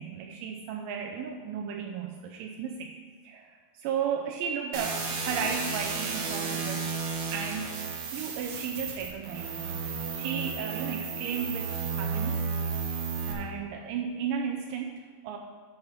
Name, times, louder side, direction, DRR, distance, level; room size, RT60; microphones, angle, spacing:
voice 1, 0.0-2.9 3.2-6.9 7.3-7.8 8.1-9.8 10.1-12.8 13.3-15.4, right 7 dB, 85° right, 2 dB, 2.0 m, -34 dB
sound 1, 4.7-13.3, right 5 dB, 70° right, 1.4 m, -33 dB
11.5 x 5.9 x 5.1 m, 1.6 s
omnidirectional pair, 4.4 m